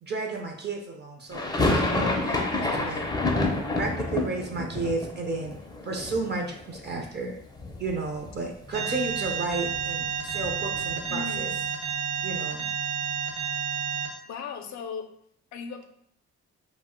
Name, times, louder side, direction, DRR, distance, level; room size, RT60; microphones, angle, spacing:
voice 1, 0.0-3.0 3.7-5.6 5.8-7.4 7.8-11.5 12.2-12.7, right 3 dB, 35° right, 1 dB, 0.5 m, -32 dB
sound 1, 1.3-7.3 7.5-8.4 8.6-8.7 9.0-11.2, left 2 dB, 15° left, 0.4 m, -29 dB
Alarm, 8.7-14.1, right 7 dB, 60° right, 1.0 m, -30 dB
voice 2, 11.1-11.5 14.3-15.1 15.5-15.9, left 5 dB, 70° left, 6 dB, 0.5 m, -36 dB
2.4 x 2.0 x 3.6 m, 0.69 s
cardioid pair, 90°, 30 cm